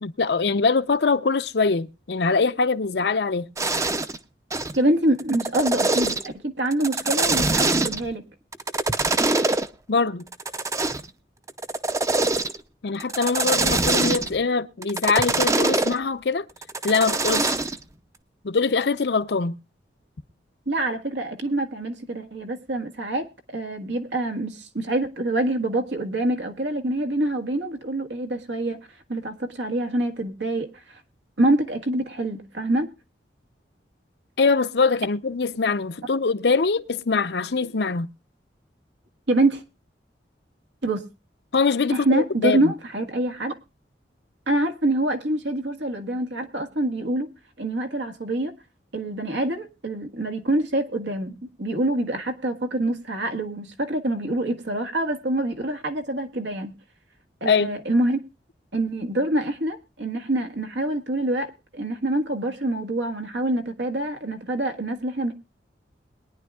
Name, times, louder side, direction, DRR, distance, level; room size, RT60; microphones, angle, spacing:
voice 1, 0.0-3.5 9.9-10.3 12.8-16.5 16.8-17.6 18.4-19.6 34.4-38.1 41.5-42.7 57.5-57.7, left 4 dB, 65° left, 0.6 m, -23 dB
sound 1, 3.6-4.2 4.5-4.8 5.2-6.3 6.7-8.1 8.5-9.7 10.3-11.1 11.5-12.6 13.0-14.4 14.8-15.9 16.6-17.8, right 3 dB, 20° right, 0.6 m, -23 dB
voice 2, 4.8-8.2 20.7-23.3 23.5-28.8 29.1-31.0 31.4-32.9 39.3-39.6 40.8-41.0 41.9-43.5 44.5-47.3 47.6-48.5 48.9-56.7 57.4-58.2 58.7-65.3, right 1 dB, 85° right, 1.7 m, -25 dB
22.0 x 10.0 x 2.3 m
head